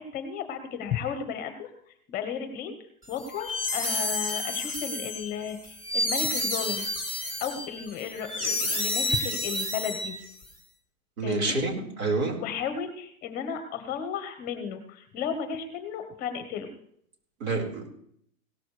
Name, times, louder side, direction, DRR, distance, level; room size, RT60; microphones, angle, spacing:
voice 1, 0.0-2.7 3.1-10.2 11.2-11.6 12.3-16.7, left 7 dB, 20° left, 8 dB, 1.0 m, -34 dB
sound 1, 3.2-10.4, left 1 dB, 15° right, 3.5 m, -30 dB
voice 2, 11.2-12.4 17.4-17.9, right 3 dB, 65° right, 1 dB, 4.5 m, -28 dB
17.0 x 13.5 x 3.3 m, 0.67 s
hypercardioid pair, 155°, 44 cm